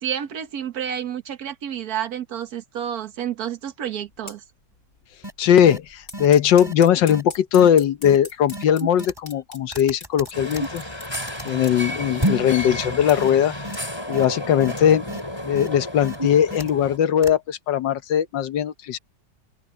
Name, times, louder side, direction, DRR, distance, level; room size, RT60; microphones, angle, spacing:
voice 1, 0.0-4.4, right 9 dB, 55° right, 1.6 m, -30 dB
sound 1, 4.1-4.4 4.8-5.0 5.3-11.1 11.6-11.7 12.1-12.3 12.8-13.1 13.4-14.8, left 3 dB, 45° left, 3.5 m, -41 dB
sound 2, 5.2-5.3 5.7-5.8 6.1-6.3 6.6-6.7 7.1-7.2 7.6-7.7 8.0-8.2 8.5-9.4 9.7-11.5 12.2-12.5 12.8-12.9 13.2-13.3 13.6-13.8 14.1-14.3 14.6-14.7 15.1-15.2 15.6-15.7 16.0-16.9 17.2-17.3, equal, 15° right, 3.7 m, -30 dB
voice 2, 5.4-10.8 11.4-13.5 14.1-15.0 15.5-19.0, left 9 dB, 75° left, 1.6 m, -19 dB
sound 3, 10.3-17.0, left 1 dB, 15° left, 7.2 m, -32 dB
open air
omnidirectional pair, 2.0 m